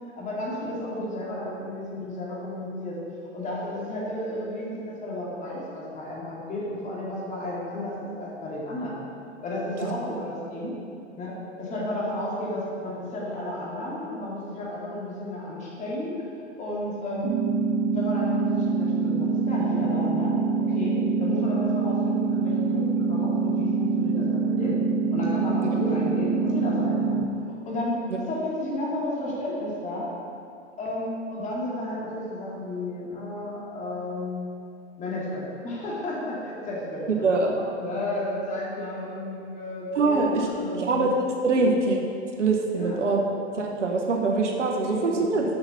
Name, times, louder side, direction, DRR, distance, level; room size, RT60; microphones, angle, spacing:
voice 1, 0.2-3.0 3.3-9.0 9.4-10.7 11.2-16.1 16.6-17.3 17.8-20.4 20.7-24.7 25.1-27.2 27.7-27.9 28.3-30.1 30.8-34.5 35.0-41.1 41.5-41.8 42.8-43.0 44.8-45.3, left 1 dB, 20° left, -5 dB, 2.1 m, -32 dB
sound 1, 17.2-27.2, right 5 dB, 35° right, 0.8 m, -25 dB
voice 2, 37.2-37.6 39.9-40.5 40.8-41.1 41.4-42.0 42.4-43.2 43.6-45.4, right 3 dB, 80° right, 1 dB, 1.1 m, -23 dB
6.8 x 5.6 x 6.0 m, 2.4 s
hypercardioid pair, 115°, 35 cm